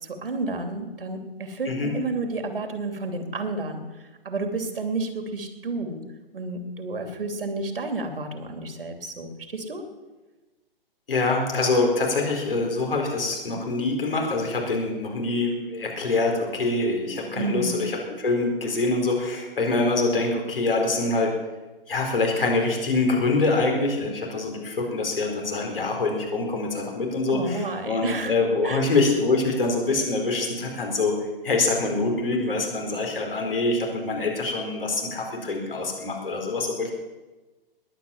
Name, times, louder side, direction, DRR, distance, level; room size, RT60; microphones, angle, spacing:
voice 1, 0.0-3.8 4.2-6.0 6.3-9.8 17.3-17.7 27.3-28.3 28.6-28.8, right 3 dB, 70° right, 6 dB, 2.9 m, -31 dB
voice 2, 1.6-2.0 11.1-21.3 21.9-31.2 31.4-36.9, left 3 dB, 70° left, 1 dB, 4.6 m, -25 dB
20.5 x 9.1 x 7.2 m, 1.2 s
figure-of-eight pair, 125°, 29 cm